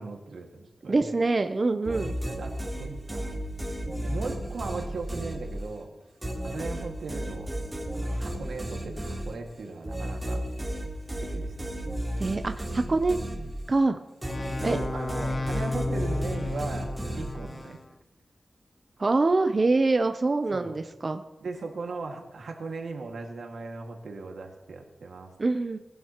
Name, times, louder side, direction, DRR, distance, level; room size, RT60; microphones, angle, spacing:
voice 1, 0.0-1.2 1.9-3.4 4.0-5.9 6.4-7.5 8.0-10.4 11.2-11.5 14.7-17.8 20.5-20.7 21.4-25.3, right 3 dB, 85° right, 2 dB, 1.9 m, -38 dB
voice 2, 0.9-2.2 12.2-13.2 13.7-14.0 14.6-14.8 19.0-21.2 25.4-25.8, right 3 dB, 35° right, 7 dB, 0.5 m, -25 dB
sound 1, 1.8-5.8 6.2-13.8 14.2-17.7, right 1 dB, 15° right, 3.1 m, -34 dB
sound 2, 14.2-17.8, left 2 dB, 30° left, 0.3 m, -33 dB
20.0 x 11.0 x 3.0 m, 1.0 s
wide cardioid pair, 120°, 0 cm